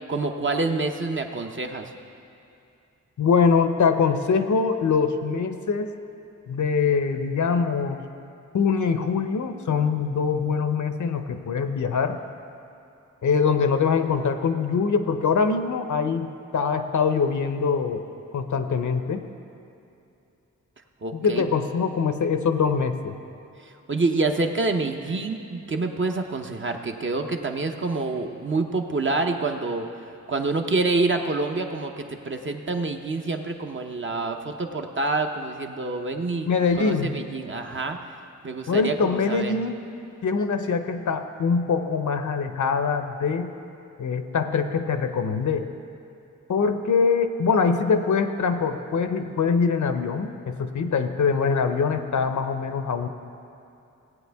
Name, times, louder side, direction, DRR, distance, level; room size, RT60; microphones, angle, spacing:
voice 1, 0.1-1.9 21.0-21.4 23.6-29.9 30.3-36.5 36.8-38.0 38.4-39.5, right 3 dB, 40° right, 4 dB, 0.8 m, -27 dB
voice 2, 3.2-5.9 6.5-8.0 8.5-12.2 13.2-18.0 18.3-19.2 21.1-23.2 36.5-37.1 38.7-39.8 40.2-43.5 44.0-45.7 46.5-53.1, left 5 dB, 70° left, 8 dB, 0.7 m, -23 dB
16.5 x 8.6 x 3.5 m, 2.7 s
wide cardioid pair, 95°, 31 cm